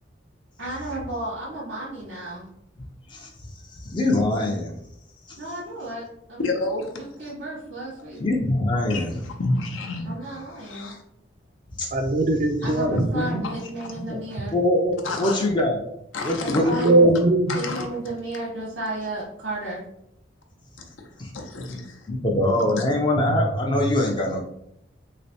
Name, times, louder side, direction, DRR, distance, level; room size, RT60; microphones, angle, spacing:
voice 1, 0.6-2.5 5.4-6.4 7.0-8.2 10.0-10.9 12.6-14.5 16.4-17.1 17.5-19.8, right 1 dB, 90° right, -8 dB, 1.3 m, -33 dB
voice 2, 3.9-4.7 5.3-5.4 8.2-9.1 11.8-11.9 12.9-13.4 14.0-14.2 14.5-15.8 16.2-16.8 21.2-21.3 22.1-24.4, left 1 dB, 25° left, 1 dB, 0.4 m, -23 dB
voice 3, 6.4-7.0 8.9-11.0 12.6-12.7 13.4-13.6 15.0-15.5 16.1-16.9 17.5-17.9 21.0-22.0 22.8-22.9, left 2 dB, 85° left, 2 dB, 0.6 m, -30 dB
voice 4, 11.9-13.1 16.8-17.6 23.2-23.4 23.9-24.0, right 2 dB, 45° right, 6 dB, 0.4 m, -20 dB
3.2 x 3.0 x 2.7 m, 0.79 s
head